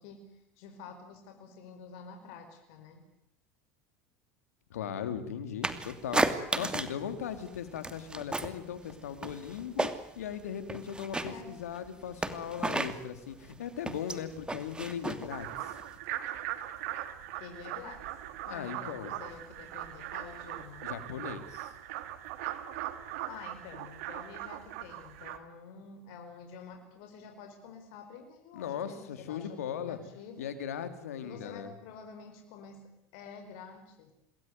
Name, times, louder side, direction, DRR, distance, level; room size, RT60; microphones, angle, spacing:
voice 1, 0.0-3.0 11.2-11.6 17.4-18.1 18.5-20.9 23.3-30.5 31.2-34.1, left 5 dB, 70° left, 5 dB, 5.0 m, -48 dB
voice 2, 4.7-6.3 6.5-9.9 10.1-15.8 18.5-19.1 20.8-21.7 28.5-30.0 30.4-31.7, left 8 dB, 90° left, 9 dB, 3.3 m, -38 dB
sound 1, 5.6-7.0 7.3-8.6 8.9-10.2 10.6-16.0, right 2 dB, 10° right, 2.8 m, -33 dB
sound 2, 15.3-25.4, right 13 dB, 75° right, 2.7 m, -40 dB
27.5 x 20.5 x 9.5 m, 0.77 s
hypercardioid pair, 90°, 8 cm